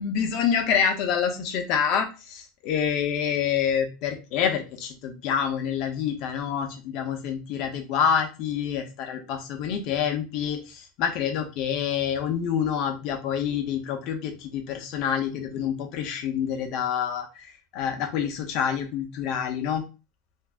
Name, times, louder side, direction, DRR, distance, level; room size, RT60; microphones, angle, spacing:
voice 1, 0.0-17.5 17.7-19.8, left 8 dB, 40° left, 5 dB, 0.7 m, -27 dB
2.6 x 2.4 x 3.4 m, 0.30 s
supercardioid pair, 165°, 0 cm